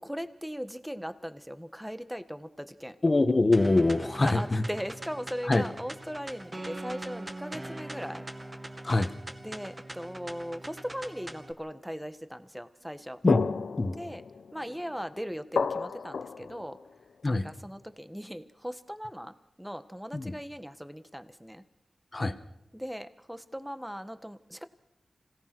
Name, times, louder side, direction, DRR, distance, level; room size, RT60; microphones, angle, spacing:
voice 1, 0.0-3.0 4.2-8.2 9.4-13.2 13.9-14.2 14.5-16.8 17.3-21.6 22.7-24.6, equal, 5° right, 10 dB, 1.6 m, -39 dB
voice 2, 3.0-4.6 5.5-5.6 8.8-9.1 13.2-13.5 13.8-14.0 17.2-17.5 20.1-20.3 22.1-22.3, left 2 dB, 40° left, 9 dB, 1.7 m, -24 dB
sound 1, 3.5-11.5, right 1 dB, 30° right, 2.0 m, -42 dB
sound 2, 13.3-17.3, left 5 dB, 85° left, 0.9 m, -33 dB
26.0 x 17.5 x 6.2 m, 0.88 s
cardioid pair, 45°, 0 cm